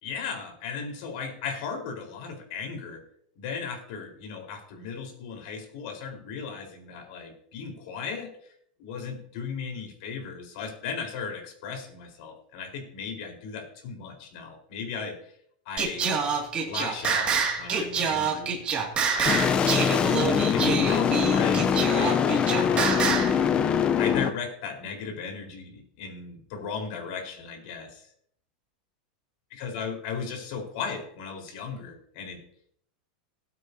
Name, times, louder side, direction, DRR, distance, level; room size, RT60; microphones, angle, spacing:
voice 1, 0.0-3.0 3.4-8.5 8.8-15.3 15.7-16.1 16.6-18.6 19.1-23.2 24.0-28.1 29.5-32.4, left 5 dB, 55° left, 2 dB, 4.1 m, -36 dB
Singing, 15.8-23.4, right 6 dB, 25° right, 2.2 m, -27 dB
sound 1, 19.3-24.3, left 7 dB, 20° left, 0.6 m, -23 dB
19.0 x 9.1 x 2.8 m, 0.66 s
supercardioid pair, 155°, 5 cm